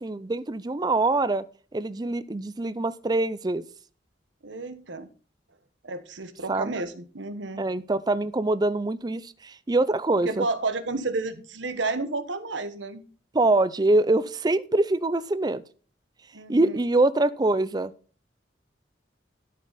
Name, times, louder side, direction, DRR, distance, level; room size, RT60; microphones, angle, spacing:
voice 1, 0.0-1.4 1.7-3.6 6.5-6.7 7.6-10.5 13.3-15.6 16.5-17.9, right 2 dB, 20° right, 15 dB, 0.4 m, -24 dB
voice 2, 4.4-5.1 5.8-7.7 10.2-13.0 16.3-16.8, right 3 dB, 90° right, 11 dB, 1.3 m, -31 dB
13.0 x 7.0 x 4.1 m, 0.39 s
head